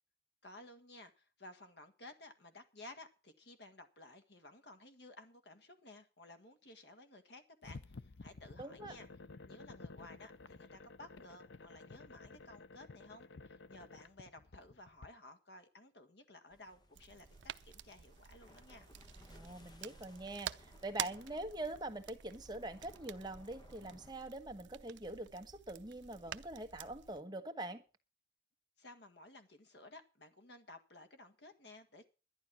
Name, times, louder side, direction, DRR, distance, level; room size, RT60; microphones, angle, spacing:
voice 1, 0.4-9.1 9.4-18.9 28.8-32.0, left 2 dB, 65° left, 1.7 m, -56 dB
Steam iron, 7.6-15.1, left 3 dB, 85° left, 0.7 m, -53 dB
voice 2, 8.6-8.9 19.3-27.8, right 2 dB, 25° right, 1.3 m, -44 dB
glass wave sound, 16.5-24.1, left 1 dB, 20° left, 1.1 m, -61 dB
sound 1, 16.9-27.2, right 10 dB, 80° right, 0.6 m, -49 dB
11.5 x 10.5 x 6.2 m
head